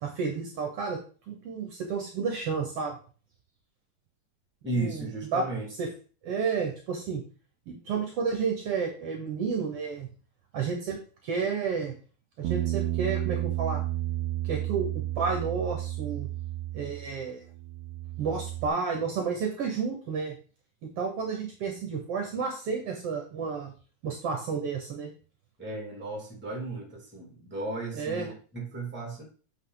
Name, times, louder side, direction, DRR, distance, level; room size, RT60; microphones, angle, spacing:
voice 1, 0.0-1.0 1.3-3.0 4.7-5.4 5.8-5.9 6.2-7.2 7.7-10.1 10.5-11.0 11.2-11.9 12.4-13.8 14.4-16.3 16.7-17.4 18.2-20.4 20.8-23.7 24.0-25.1 27.9-28.3, right 5 dB, 60° right, 2 dB, 1.9 m, -31 dB
voice 2, 4.6-5.7 25.6-29.2, right 2 dB, 5° right, -1 dB, 2.1 m, -35 dB
Bass guitar, 12.4-17.2 17.5-18.7, right 15 dB, 85° right, 1.3 m, -32 dB
8.2 x 5.4 x 4.0 m, 0.39 s
omnidirectional pair, 3.3 m